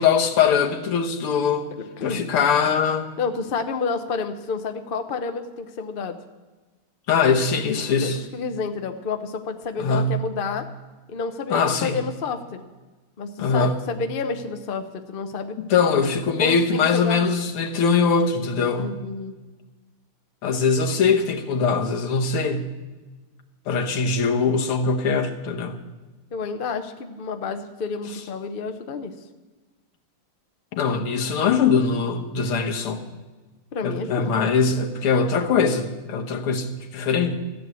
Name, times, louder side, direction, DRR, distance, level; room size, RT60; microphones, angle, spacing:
voice 1, 0.0-1.7 2.0-3.1 7.1-8.2 9.8-10.2 11.5-12.0 13.4-13.8 15.6-18.9 20.4-22.7 23.7-25.8 30.7-33.0 33.8-37.4, left 5 dB, 90° left, 4 dB, 2.0 m, -22 dB
voice 2, 1.7-2.2 3.2-6.2 8.0-10.7 11.1-12.6 13.2-15.6 16.4-17.2 18.8-19.3 26.3-29.1 33.7-34.4, left 4 dB, 55° left, 7 dB, 0.5 m, -29 dB
14.0 x 7.7 x 8.3 m, 1.2 s
omnidirectional pair, 2.3 m